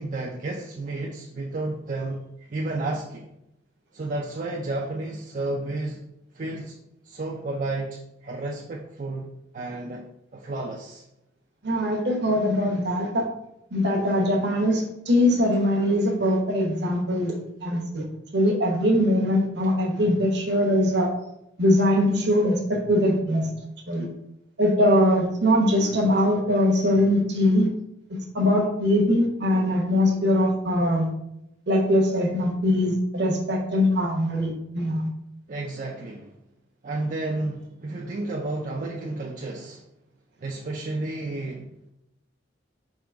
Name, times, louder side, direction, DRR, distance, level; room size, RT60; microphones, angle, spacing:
voice 1, 0.0-3.3 3.9-6.0 6.3-6.8 7.0-9.3 9.5-10.1 10.3-11.1 35.5-36.4 36.8-39.8 40.4-41.9, right 2 dB, 40° right, -1 dB, 0.4 m, -32 dB
voice 2, 11.6-13.2 13.7-18.0 18.3-21.1 21.6-23.5 23.9-24.1 24.6-27.7 28.1-31.1 31.7-35.1, left 1 dB, 60° right, 2 dB, 0.9 m, -22 dB
3.7 x 2.9 x 4.6 m, 0.84 s
head